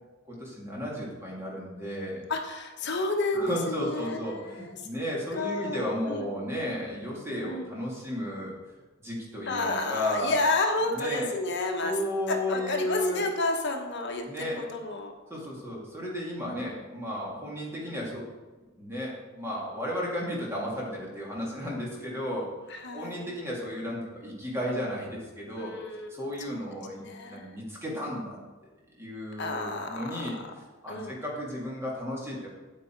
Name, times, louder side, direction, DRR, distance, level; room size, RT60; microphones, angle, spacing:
voice 1, 0.2-2.2 3.3-8.5 9.0-10.4 10.9-11.3 11.8-13.3 14.3-14.6 15.3-18.3 18.8-25.8 26.1-28.4 29.0-30.4 30.8-32.5, left 1 dB, 10° right, -4 dB, 2.5 m, -34 dB
voice 2, 2.3-5.0 5.3-6.3 7.4-7.7 9.5-12.0 12.3-15.1 16.4-16.8 22.7-23.3 25.6-26.6 27.0-27.6 29.4-30.3 30.9-31.1, left 2 dB, 55° left, 3 dB, 1.2 m, -31 dB
8.4 x 8.4 x 4.6 m, 1.2 s
head